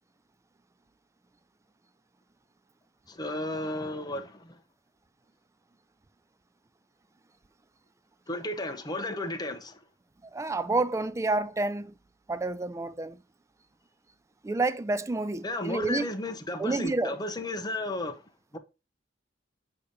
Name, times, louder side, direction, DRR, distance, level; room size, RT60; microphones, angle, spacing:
voice 1, 3.1-4.6 8.3-9.8 15.4-18.2 18.5-18.6, left 2 dB, 20° left, 0.8 m, -33 dB
voice 2, 10.3-11.9 12.3-13.2 14.4-16.1 16.6-17.2, right 2 dB, 15° right, 0.3 m, -29 dB
6.7 x 2.9 x 5.0 m
head